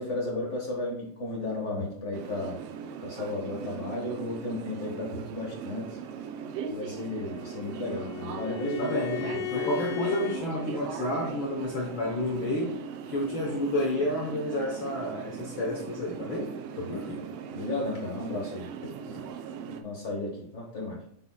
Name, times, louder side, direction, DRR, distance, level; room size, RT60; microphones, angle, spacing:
voice 1, 0.0-2.6 3.0-6.0 6.7-9.2 16.8-17.0 17.5-18.9 19.7-21.0, left 2 dB, 40° left, -1 dB, 1.0 m, -34 dB
sound 1, 2.1-19.8, right 7 dB, 85° right, 1.4 m, -39 dB
Bowed string instrument, 6.9-10.4, left 14 dB, 80° left, 2.4 m, -37 dB
voice 2, 8.8-12.8 13.1-17.3 19.1-19.2, left 1 dB, 65° left, -2 dB, 1.2 m, -30 dB
8.8 x 5.9 x 2.3 m, 0.66 s
omnidirectional pair, 3.5 m